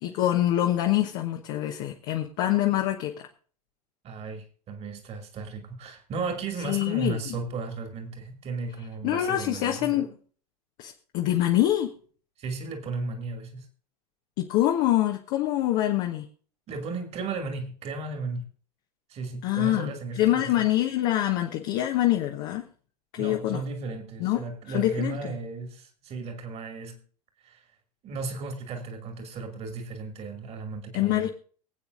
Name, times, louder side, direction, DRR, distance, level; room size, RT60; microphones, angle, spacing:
voice 1, 0.0-3.3 6.6-7.4 9.0-10.1 10.8-11.9 14.4-16.3 19.4-19.9 20.1-22.6 23.1-23.6 24.2-24.4 24.7-25.4 30.9-31.3, left 13 dB, 45° left, 2 dB, 1.2 m, -25 dB
voice 2, 4.0-10.0 12.4-13.7 16.7-18.5 19.1-20.5 23.2-27.0 27.4-27.6 28.0-31.3, right 4 dB, 30° right, 4 dB, 2.5 m, -35 dB
24.0 x 8.6 x 2.6 m, 0.43 s
figure-of-eight pair, 85°, 20 cm